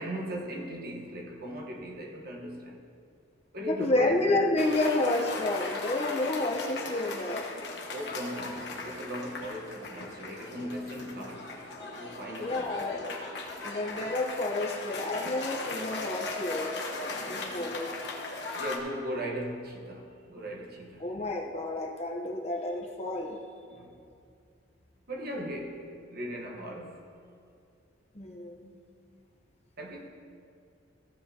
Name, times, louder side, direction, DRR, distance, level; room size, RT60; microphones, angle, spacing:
voice 1, 0.0-2.8 3.5-4.4 7.9-11.6 11.9-13.0 17.3-17.8 18.5-21.2 23.7-24.0 25.1-27.1 29.8-30.1, equal, 50° right, 1.2 m, -38 dB
voice 2, 3.6-7.5 12.4-13.1 13.6-17.9 21.0-23.4 28.1-28.8, left 2 dB, 35° left, 0.8 m, -30 dB
Cheering / Applause, 4.6-18.8, left 3 dB, 60° left, 1.2 m, -38 dB
15.0 x 7.5 x 2.8 m
head